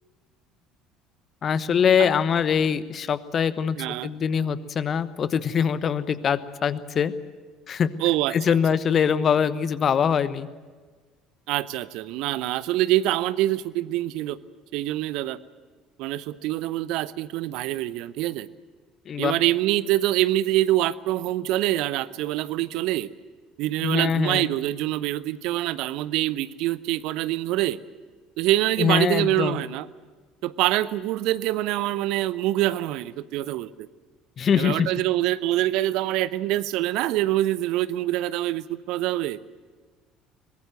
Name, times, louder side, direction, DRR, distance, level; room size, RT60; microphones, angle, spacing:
voice 1, 1.4-7.1 7.7-7.9 8.3-10.5 19.1-19.3 23.8-24.5 28.8-29.6 34.4-34.9, left 7 dB, 40° left, 15 dB, 1.1 m, -23 dB
voice 2, 3.8-4.1 8.0-8.6 11.5-14.4 14.7-15.4 16.0-18.5 19.2-23.1 23.6-27.8 28.4-29.9 30.4-33.9 34.6-39.4, right 15 dB, 60° right, 17 dB, 0.7 m, -25 dB
23.0 x 20.0 x 7.9 m, 1.4 s
figure-of-eight pair, 60°, 0 cm